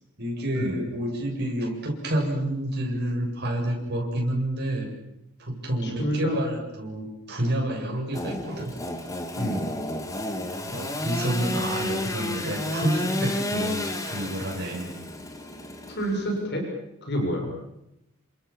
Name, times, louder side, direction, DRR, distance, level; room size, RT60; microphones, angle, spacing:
voice 1, 0.2-4.9 5.4-8.7 10.7-14.9, right 1 dB, 50° right, 0 dB, 7.9 m, -29 dB
voice 2, 5.8-6.4 9.4-9.7 16.0-16.6 17.0-17.5, equal, 50° left, 2 dB, 6.9 m, -28 dB
Engine / Sawing, 8.1-16.4, left 1 dB, 15° left, 2.7 m, -31 dB
29.5 x 27.5 x 7.3 m, 0.86 s
head